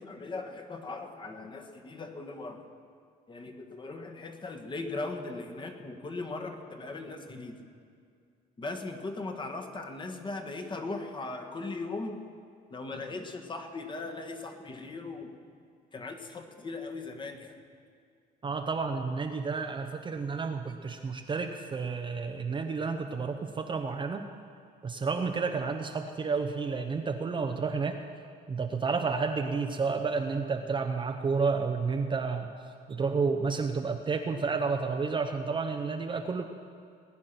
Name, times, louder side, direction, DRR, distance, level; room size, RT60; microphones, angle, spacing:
voice 1, 0.0-2.6 3.3-7.6 8.6-12.2 12.7-15.3 15.9-17.6, left 3 dB, 30° left, 4 dB, 1.6 m, -38 dB
voice 2, 18.4-24.2 24.8-28.0 28.5-32.5 32.9-36.4, right 4 dB, 30° right, 4 dB, 0.8 m, -31 dB
19.5 x 9.6 x 5.9 m, 2.3 s
cardioid pair, 110°, 17 cm